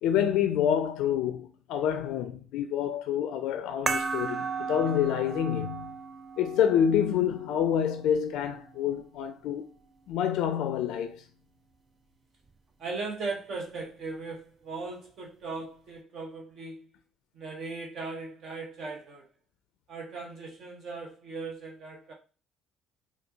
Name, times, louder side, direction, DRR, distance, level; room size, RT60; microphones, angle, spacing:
voice 1, 0.0-5.9 6.4-9.6 10.1-11.2, left 9 dB, 70° left, 0.3 m, -27 dB
sound 1, 3.9-8.9, right 5 dB, 35° right, 0.4 m, -36 dB
voice 2, 12.8-16.8 17.3-19.3 19.9-22.1, right 3 dB, 60° right, 0.8 m, -38 dB
4.3 x 2.4 x 2.6 m
hypercardioid pair, 60°, 0 cm